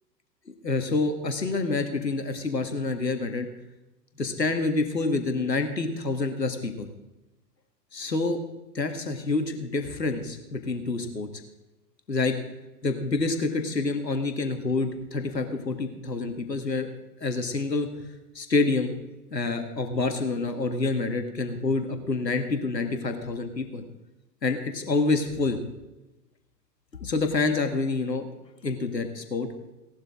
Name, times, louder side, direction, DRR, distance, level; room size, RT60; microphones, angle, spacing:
voice 1, 0.6-3.5 4.2-6.9 7.9-8.4 8.7-11.3 12.1-12.3 12.8-16.9 17.2-17.9 18.4-18.9 19.3-23.8 24.4-25.6 27.0-28.3 28.6-29.5, left 3 dB, 80° left, 6 dB, 2.0 m, -27 dB
17.5 x 12.0 x 3.7 m, 1.0 s
figure-of-eight pair, 110°, 49 cm